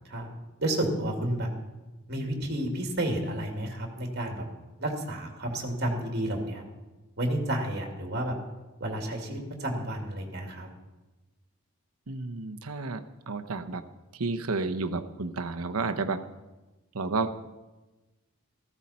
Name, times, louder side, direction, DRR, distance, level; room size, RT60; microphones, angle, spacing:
voice 1, 0.6-1.5 2.1-4.4 4.8-6.6 7.2-8.3 8.8-10.7, right 1 dB, 50° right, 2 dB, 2.5 m, -31 dB
voice 2, 12.1-13.8 14.1-16.3 16.9-17.4, right 3 dB, 80° right, 8 dB, 0.9 m, -31 dB
15.0 x 14.5 x 4.3 m, 1.1 s
head